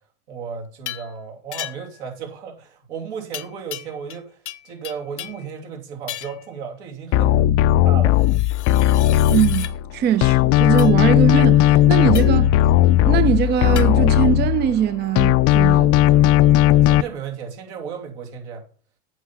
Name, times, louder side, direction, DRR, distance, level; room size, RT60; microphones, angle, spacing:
voice 1, 0.3-4.4 4.6-8.2 16.8-18.6, right 6 dB, 75° right, 2.9 m, -34 dB
sound 1, 0.9-1.1 1.5-2.0 3.3-4.2 4.5-5.5 6.1-6.5 8.2-9.7 10.8-11.0 12.1-12.5 13.8-13.9, left 13 dB, 90° left, 0.8 m, -35 dB
sound 2, 7.1-9.9 10.2-14.9 15.2-17.0, left 13 dB, 45° left, 0.5 m, -16 dB
voice 2, 9.3-12.6 13.0-16.0, right 9 dB, 30° right, 0.5 m, -21 dB
8.0 x 5.6 x 5.9 m
hypercardioid pair, 95°, 34 cm